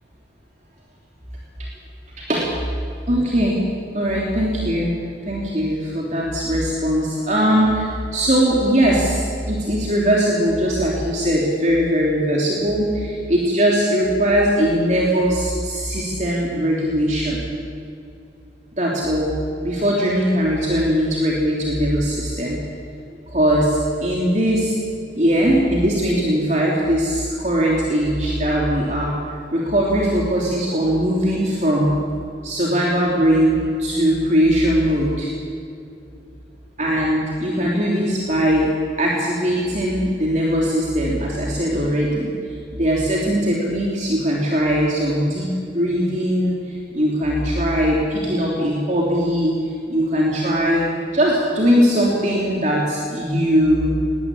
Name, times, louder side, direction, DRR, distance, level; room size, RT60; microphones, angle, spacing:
voice 1, 3.1-3.7 3.9-4.9 5.2-17.4 18.8-19.3 19.6-22.6 23.3-24.8 25.1-31.9 32.4-35.3 36.8-38.7 39.0-42.3 42.7-46.6 46.9-49.6 49.9-53.9, equal, 40° right, -3 dB, 3.3 m, -20 dB
20.0 x 19.5 x 8.9 m, 2.5 s
head